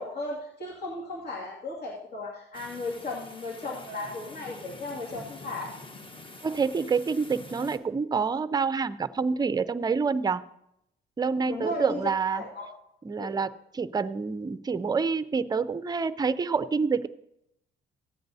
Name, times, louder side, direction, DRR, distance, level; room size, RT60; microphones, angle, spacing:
voice 1, 0.0-5.7 11.5-12.0 12.3-12.7 13.2-13.3, left 2 dB, 55° left, -4 dB, 2.2 m, -36 dB
sound 1, 2.5-7.8, left 2 dB, 25° left, 1.2 m, -46 dB
voice 2, 6.4-10.4 11.2-12.4 13.0-17.1, right 5 dB, 20° right, 14 dB, 0.5 m, -27 dB
15.5 x 9.2 x 2.7 m, 0.80 s
cardioid pair, 90°, 20 cm